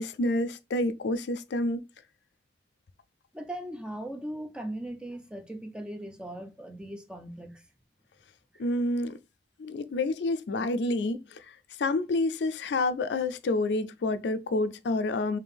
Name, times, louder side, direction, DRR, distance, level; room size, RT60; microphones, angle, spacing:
voice 1, 0.0-1.9 8.6-9.2 9.6-15.4, left 2 dB, 75° left, 0.4 m, -28 dB
voice 2, 3.3-7.7 8.5-8.6, right 1 dB, 5° right, 0.4 m, -39 dB
3.4 x 2.7 x 3.5 m
head